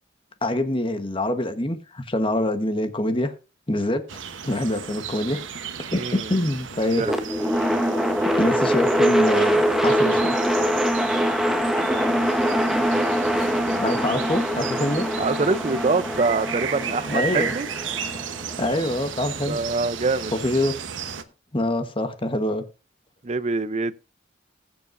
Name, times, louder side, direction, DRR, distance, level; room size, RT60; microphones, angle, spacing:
voice 1, 0.4-3.3 3.7-5.4 5.9-7.0 8.4-10.2 13.8-15.1 17.1-17.5 18.6-19.6 20.3-20.8 21.5-22.6, left 1 dB, 25° left, 1.1 m, -25 dB
sound 1, 4.1-21.2, right 6 dB, 85° right, 1.0 m, -34 dB
voice 2, 6.0-6.3 6.9-7.1 15.2-17.7 19.5-20.3 23.2-23.9, right 3 dB, 35° right, 0.5 m, -24 dB
sound 2, 7.0-19.2, equal, ahead, 0.9 m, -23 dB
20.5 x 6.9 x 2.6 m
head